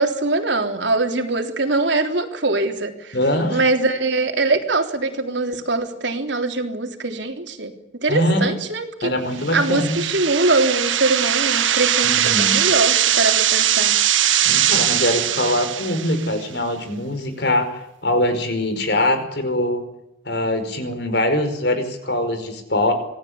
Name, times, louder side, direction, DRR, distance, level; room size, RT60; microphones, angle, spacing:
voice 1, 0.0-3.2 3.5-9.1 9.5-14.0, right 2 dB, 70° right, 4 dB, 3.5 m, -22 dB
voice 2, 3.1-3.6 8.1-8.5 9.0-10.0 12.0-12.6 14.4-19.8 20.2-22.9, left 1 dB, 60° left, 9 dB, 5.0 m, -22 dB
sound 1, 9.4-16.3, right 11 dB, 90° right, 1.6 m, -20 dB
26.0 x 18.0 x 8.8 m, 0.85 s
head